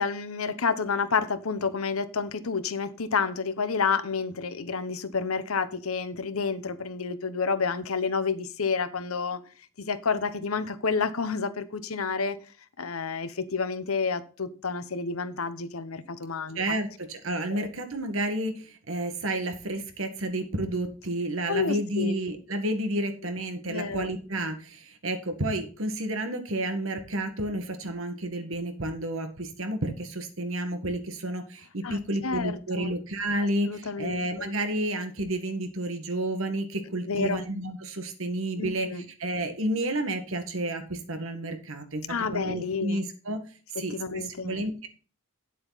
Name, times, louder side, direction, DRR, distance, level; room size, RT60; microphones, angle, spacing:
voice 1, 0.0-9.4 9.8-12.4 12.8-16.6 17.5-17.7 21.5-22.1 23.6-24.1 31.8-33.0 33.6-34.3 37.1-37.4 38.6-39.1 42.1-43.0 43.7-44.6, left 5 dB, 90° left, 1.0 m, -29 dB
voice 2, 16.5-42.0 42.3-43.4 43.8-44.9, right 1 dB, 65° right, 1.7 m, -31 dB
9.0 x 7.7 x 4.1 m
head